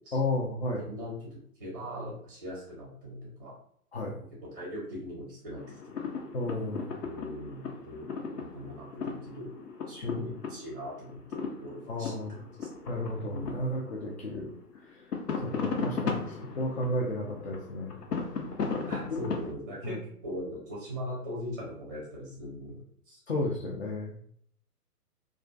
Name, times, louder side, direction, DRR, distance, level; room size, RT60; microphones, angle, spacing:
voice 1, 0.1-0.8 3.9-4.2 6.3-6.9 10.0-10.3 11.9-12.4 12.9-14.5 14.9-15.0 15.4-18.0 19.1-19.2 19.8-20.0 23.3-24.1, left 1 dB, 45° left, -2 dB, 0.4 m, -33 dB
voice 2, 0.6-3.5 4.2-4.3 4.5-6.0 7.0-8.1 8.4-9.5 9.9-12.1 12.6-12.7 13.3-13.8 18.9-20.0 20.2-23.2, equal, 15° right, -5 dB, 0.6 m, -40 dB
sound 1, 5.6-14.3 14.6-19.5, left 5 dB, 85° left, 0.6 m, -37 dB
2.4 x 2.4 x 2.3 m, 0.64 s
figure-of-eight pair, 135°, 47 cm